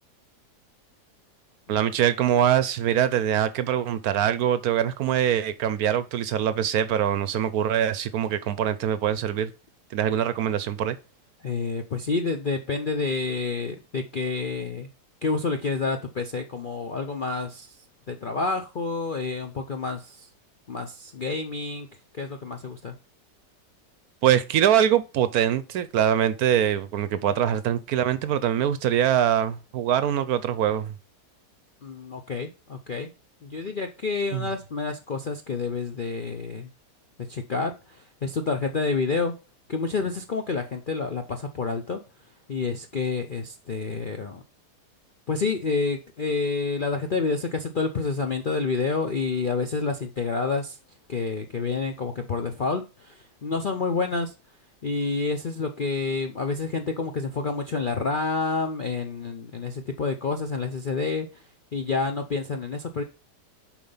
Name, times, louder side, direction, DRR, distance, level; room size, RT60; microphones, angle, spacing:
voice 1, 1.7-9.5 9.9-11.0 24.2-30.9 34.3-34.5, right 10 dB, 70° right, 1.0 m, -23 dB
voice 2, 11.4-14.9 15.2-17.7 18.1-20.3 20.7-21.9 22.1-22.9 31.8-33.1 33.4-36.7 37.3-39.3 39.7-42.0 42.5-44.4 45.3-50.8 51.1-54.3 54.8-61.4 61.7-63.0, left 4 dB, 55° left, 0.5 m, -28 dB
7.2 x 4.9 x 5.5 m
omnidirectional pair, 1.8 m